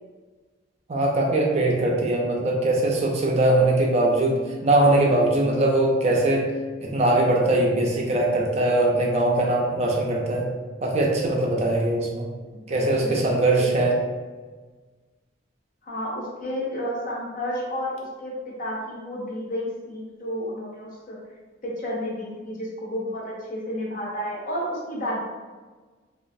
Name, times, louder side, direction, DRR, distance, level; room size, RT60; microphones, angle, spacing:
voice 1, 0.9-6.5 6.8-10.5 10.8-12.3 12.7-14.0, right 2 dB, 35° right, -1 dB, 0.4 m, -21 dB
voice 2, 12.7-13.7 15.8-21.2 21.6-25.2, equal, 45° left, -3 dB, 0.6 m, -31 dB
3.0 x 2.4 x 2.5 m, 1.4 s
head